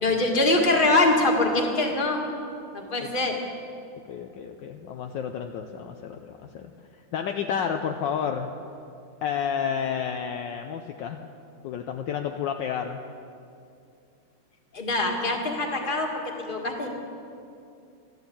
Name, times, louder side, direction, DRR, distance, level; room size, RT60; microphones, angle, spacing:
voice 1, 0.0-2.2 2.7-3.4 14.7-16.1 16.5-16.9, left 2 dB, 25° left, 2 dB, 1.7 m, -23 dB
voice 2, 4.1-6.7 7.1-8.5 9.2-11.2 11.6-13.0, left 7 dB, 70° left, 5 dB, 1.3 m, -30 dB
13.5 x 12.0 x 8.5 m, 2.5 s
omnidirectional pair, 2.3 m